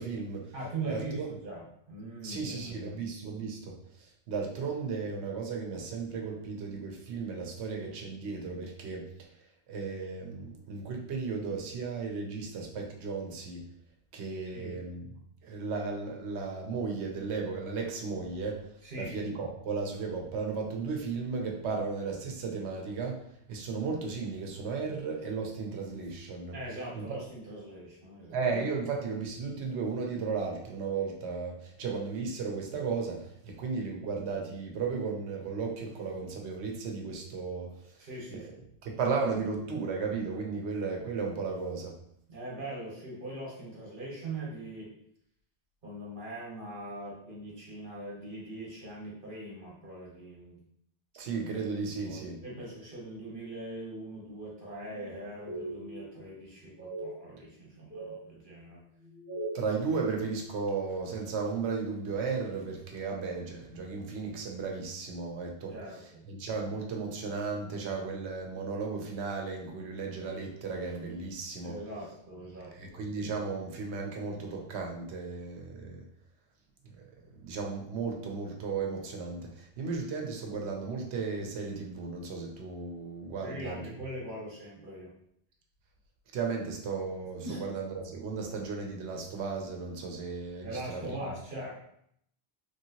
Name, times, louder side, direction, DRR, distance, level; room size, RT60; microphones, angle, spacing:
voice 1, 0.0-0.5 0.9-1.3 2.2-9.1 9.7-13.6 14.1-15.1 15.4-23.2 23.5-26.5 26.9-27.2 28.3-38.4 38.8-42.0 51.2-52.4 59.5-65.7 66.3-71.8 72.7-76.0 77.0-77.1 77.4-83.9 86.3-91.1, right 4 dB, 85° right, 1 dB, 1.0 m, -35 dB
voice 2, 0.5-3.0 14.5-14.8 18.8-19.1 26.5-28.4 38.0-38.7 42.3-44.9 45.8-50.6 52.0-58.8 65.7-66.3 71.6-73.1 83.4-85.1 87.4-87.6 90.6-91.7, right 1 dB, 50° right, -4 dB, 1.3 m, -41 dB
sound 1, 54.9-55.1 55.5-56.3 56.8-57.1 57.6-58.2 58.9-59.7, right 2 dB, 15° right, 0.7 m, -40 dB
3.2 x 2.7 x 2.8 m, 0.72 s
omnidirectional pair, 1.1 m